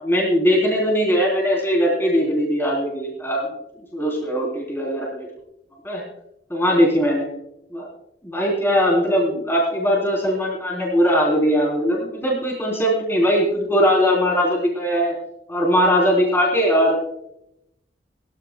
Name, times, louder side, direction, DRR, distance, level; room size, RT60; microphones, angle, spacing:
voice 1, 0.0-3.5 3.9-5.3 5.8-6.0 6.5-7.3 7.7-7.9 8.2-15.1 15.5-17.0, equal, 15° left, -2 dB, 3.5 m, -20 dB
21.5 x 14.5 x 2.2 m, 0.81 s
head